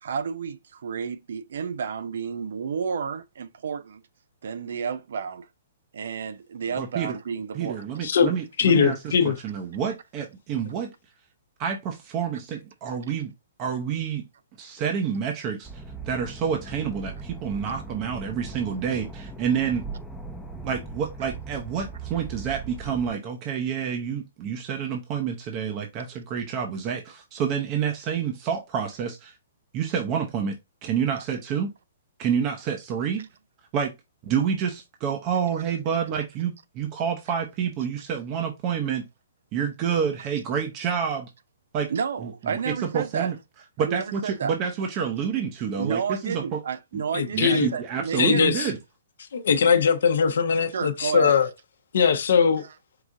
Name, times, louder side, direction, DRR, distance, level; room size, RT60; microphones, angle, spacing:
voice 1, 0.0-4.0 4.4-5.5 5.9-7.9 41.9-43.3 43.8-44.5 45.8-48.4 50.7-51.4, right 6 dB, 70° right, 0.5 m, -31 dB
voice 2, 6.8-7.2 7.5-10.9 11.6-13.3 13.6-14.2 14.6-19.9 20.6-29.4 29.7-31.7 32.2-33.2 33.7-33.9 34.2-39.1 39.5-41.3 41.7-41.9 42.2-43.3 43.8-46.6 47.3-48.8, right 7 dB, 35° right, 0.7 m, -28 dB
voice 3, 8.6-9.4 47.1-47.7 48.2-48.7 49.3-51.5 51.9-52.6, left 6 dB, 70° left, 0.7 m, -21 dB
sound 1, 15.6-23.1, right 3 dB, 5° left, 0.6 m, -39 dB
4.7 x 2.6 x 3.6 m
hypercardioid pair, 140°, 0 cm